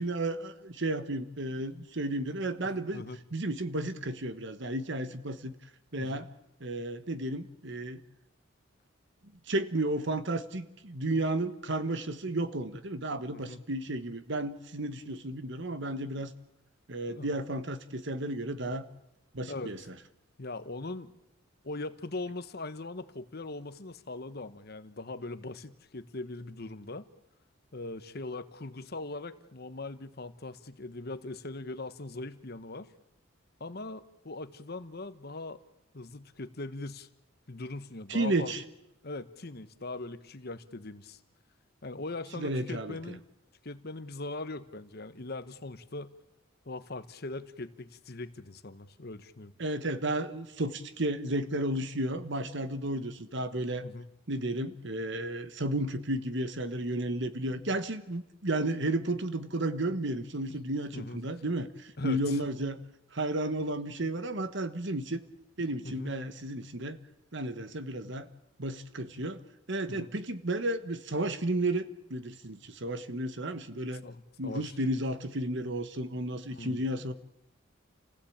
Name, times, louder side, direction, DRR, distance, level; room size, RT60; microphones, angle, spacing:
voice 1, 0.0-3.0 3.3-5.5 5.9-6.3 6.6-8.0 9.5-16.3 16.9-18.8 19.3-19.8 38.1-38.6 42.3-43.0 49.6-53.9 54.3-62.8 63.1-65.2 65.6-67.0 67.3-68.3 68.6-69.4 69.7-74.0 74.4-77.1, right 1 dB, 60° right, 11 dB, 1.3 m, -33 dB
voice 2, 2.6-3.2 6.0-6.3 13.3-13.6 17.1-17.3 19.5-19.7 20.4-21.1 21.6-27.1 27.7-32.9 33.6-35.6 35.9-37.1 37.5-38.5 39.0-41.2 41.8-43.2 43.6-46.1 46.6-49.5 53.8-54.1 60.9-61.2 62.0-62.4 65.8-66.2 69.9-70.1 74.0-74.7 76.6-76.8, left 2 dB, 50° left, 11 dB, 1.2 m, -40 dB
29.5 x 16.0 x 8.7 m, 0.91 s
head